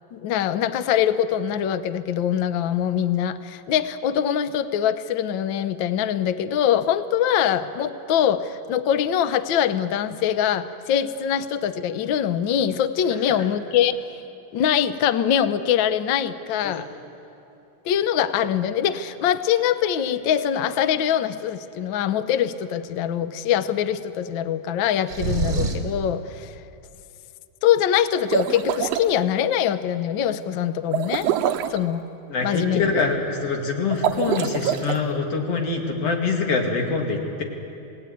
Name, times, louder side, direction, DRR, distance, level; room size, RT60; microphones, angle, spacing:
voice 1, 0.1-14.2 14.5-16.9 17.8-26.5 27.6-31.3 31.7-32.0 32.4-33.1, left 9 dB, 90° left, 12 dB, 1.0 m, -23 dB
sound 1, 25.1-26.0, right 4 dB, 40° right, 3.0 m, -25 dB
sound 2, 28.1-29.1 30.9-31.8 33.9-35.0, right 10 dB, 70° right, 1.8 m, -25 dB
voice 2, 32.3-37.4, left 4 dB, 55° left, 2 dB, 3.4 m, -25 dB
28.0 x 18.5 x 9.3 m, 2.8 s
omnidirectional pair, 3.3 m